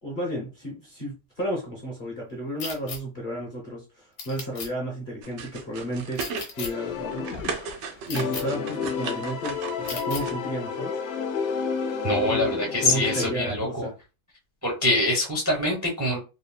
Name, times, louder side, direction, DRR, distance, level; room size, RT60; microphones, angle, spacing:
voice 1, 0.0-6.2 6.6-7.3 8.1-11.0 11.6-11.7 12.8-13.9, right 1 dB, 40° left, 0.7 m, -33 dB
sound 1, 2.6-3.0 4.2-4.7 6.2-6.7 8.1-8.4 9.9-10.2, left 4 dB, 65° left, 1.2 m, -35 dB
sound 2, 5.2-6.5 6.9-10.3, right 5 dB, 70° right, 0.9 m, -36 dB
sound 3, 6.6-7.8 8.2-13.3, left 6 dB, 90° left, 0.6 m, -30 dB
voice 2, 12.0-13.9 14.6-16.2, left 1 dB, 25° right, 0.3 m, -24 dB
3.7 x 2.0 x 2.2 m
omnidirectional pair, 1.8 m